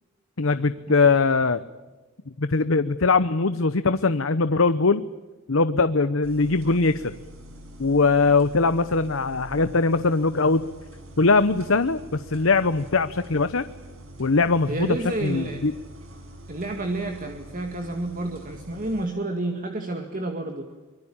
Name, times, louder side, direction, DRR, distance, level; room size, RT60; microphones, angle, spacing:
voice 1, 0.4-1.6 2.4-5.0 5.5-7.1 7.8-10.7 11.2-13.6 14.2-14.9 15.2-15.7, left 3 dB, 70° left, 12 dB, 0.9 m, -21 dB
sound 1, 6.2-19.1, right 1 dB, 75° right, 6.1 m, -45 dB
voice 2, 14.7-15.6 16.5-20.7, right 2 dB, 40° right, 4 dB, 2.2 m, -30 dB
25.0 x 22.5 x 8.7 m, 1.2 s
head